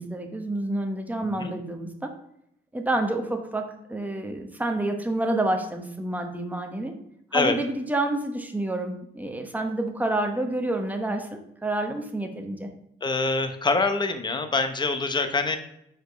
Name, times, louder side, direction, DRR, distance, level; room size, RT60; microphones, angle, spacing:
voice 1, 0.0-2.1 2.7-6.9 7.3-12.7, right 2 dB, 10° right, 4 dB, 1.0 m, -28 dB
voice 2, 13.0-15.6, left 3 dB, 20° left, 8 dB, 0.8 m, -25 dB
5.1 x 4.4 x 5.1 m, 0.77 s
cardioid pair, 90°, 20 cm